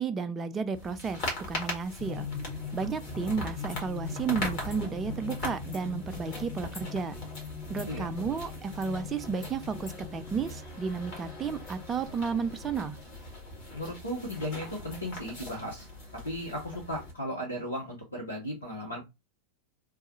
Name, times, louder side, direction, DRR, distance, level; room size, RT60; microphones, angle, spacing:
voice 1, 0.0-2.3 2.7-7.1 7.7-13.0, right 5 dB, 20° right, 0.4 m, -32 dB
sound 1, 0.7-17.1, left 1 dB, 45° left, 1.5 m, -41 dB
sound 2, 2.0-13.1, left 5 dB, 15° left, 1.0 m, -41 dB
voice 2, 13.7-15.9 16.2-19.0, equal, 80° left, 0.8 m, -36 dB
3.5 x 2.3 x 2.8 m
figure-of-eight pair, 90°, 0 cm